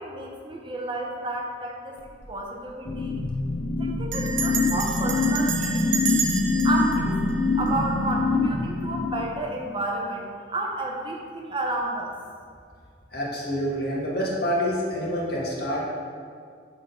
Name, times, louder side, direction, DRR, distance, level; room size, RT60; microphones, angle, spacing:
voice 1, 0.0-3.2 3.8-5.9 6.6-7.2 7.6-12.1, right 2 dB, 25° right, 0 dB, 0.6 m, -31 dB
Bell, 2.0-2.4 2.6-2.7 2.9-3.3 4.1-8.2, right 5 dB, 85° right, 0.7 m, -31 dB
sound 1, 2.8-9.6, left 3 dB, 30° left, 0.3 m, -25 dB
voice 2, 13.1-15.9, equal, 55° left, -4 dB, 1.5 m, -27 dB
6.1 x 3.7 x 5.5 m, 2.2 s
head